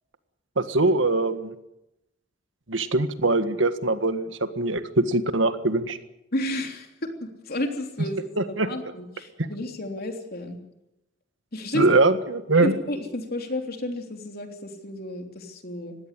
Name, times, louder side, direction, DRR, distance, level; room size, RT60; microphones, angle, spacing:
voice 1, 0.6-1.6 2.7-6.0 8.4-8.7 9.4-9.5 11.7-12.8, right 2 dB, 80° right, 10 dB, 1.7 m, -22 dB
voice 2, 6.3-6.9 7.2-10.6 11.5-11.9 12.6-16.0, left 1 dB, 55° left, 4 dB, 3.4 m, -32 dB
20.0 x 16.5 x 9.9 m, 0.90 s
head